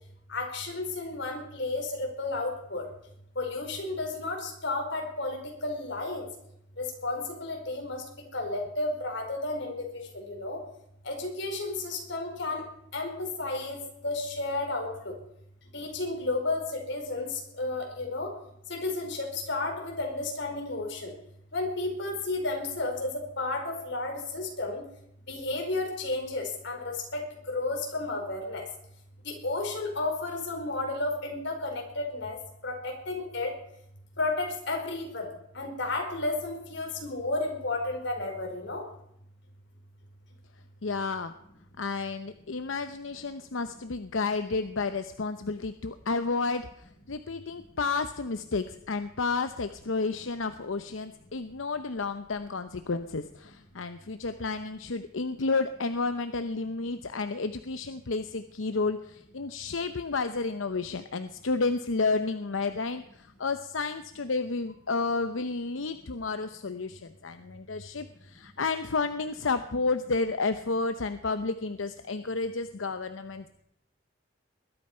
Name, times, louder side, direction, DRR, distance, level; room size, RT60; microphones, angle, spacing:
voice 1, 0.3-2.9 3.3-6.2 6.8-8.0 8.3-10.6 11.0-12.6 12.9-13.8 14.0-15.1 15.7-18.3 18.7-21.1 21.5-24.8 25.3-28.6 29.2-33.5 34.2-38.8, left 2 dB, 65° left, 2 dB, 4.9 m, -32 dB
voice 2, 40.8-41.3 41.8-73.5, left 4 dB, 90° left, 10 dB, 0.8 m, -31 dB
21.0 x 12.0 x 5.6 m, 0.77 s
head